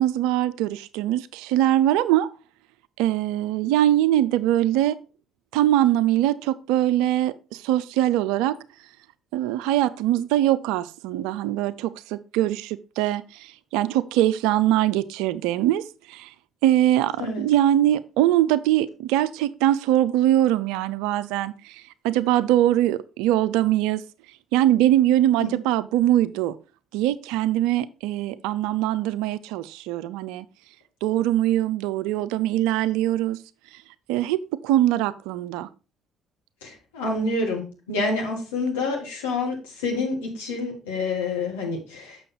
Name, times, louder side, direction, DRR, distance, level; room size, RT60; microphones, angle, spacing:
voice 1, 0.0-2.3 3.0-5.0 5.5-8.6 9.3-16.3 16.6-24.0 24.5-26.6 26.9-30.4 31.0-33.4 34.1-35.7, right 13 dB, 70° right, 0.4 m, -22 dB
voice 2, 36.6-42.2, left 3 dB, 80° left, 2.1 m, -28 dB
6.7 x 6.3 x 3.8 m
hypercardioid pair, 50°, 0 cm